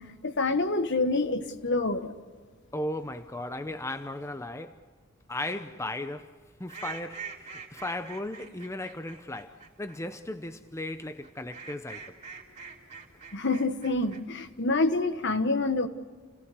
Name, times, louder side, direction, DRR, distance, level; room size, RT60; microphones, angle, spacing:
voice 1, 0.2-2.1 13.3-15.9, left 3 dB, 60° left, 1.4 m, -27 dB
voice 2, 2.7-4.8 5.3-12.1, left 1 dB, 15° left, 0.7 m, -36 dB
sound 1, 6.7-10.0 11.2-14.2, right 6 dB, 35° right, 3.5 m, -44 dB
29.5 x 17.5 x 6.8 m
head